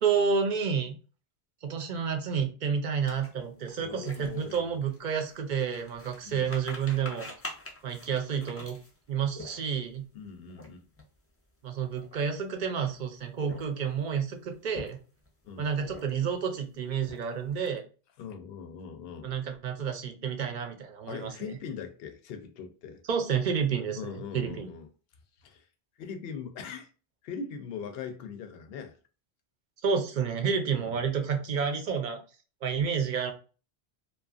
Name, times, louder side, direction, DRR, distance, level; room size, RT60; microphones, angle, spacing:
voice 1, 0.0-1.0 1.6-7.3 7.8-8.8 9.1-10.1 11.6-15.0 15.6-17.8 19.2-21.3 23.0-24.7 29.8-32.2 32.6-33.3, right 6 dB, 60° right, 0.6 m, -30 dB
sound 1, 3.1-10.0 10.5-10.7 10.9-11.2 11.8-12.6 13.3-14.0 14.5-15.3 15.8-16.4 16.7-17.5, left 1 dB, 20° left, 0.3 m, -45 dB
voice 2, 3.8-4.7 6.2-6.5 10.1-10.8 15.4-15.7 18.2-19.3 21.1-23.0 24.0-24.9 25.4-25.7 26.0-26.9 27.2-29.0 30.8-31.1, left 6 dB, 70° left, 0.8 m, -41 dB
2.7 x 2.3 x 2.4 m
omnidirectional pair, 1.0 m